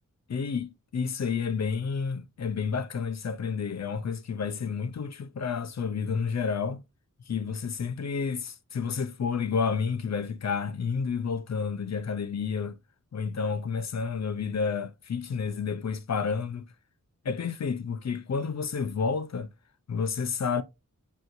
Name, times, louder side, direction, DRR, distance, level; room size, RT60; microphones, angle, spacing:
voice 1, 0.3-6.8 7.3-12.8 13.1-16.7 17.2-19.5 19.9-20.6, left 5 dB, 55° left, 0.5 m, -30 dB
6.1 x 2.7 x 2.4 m
wide cardioid pair, 80°, 33 cm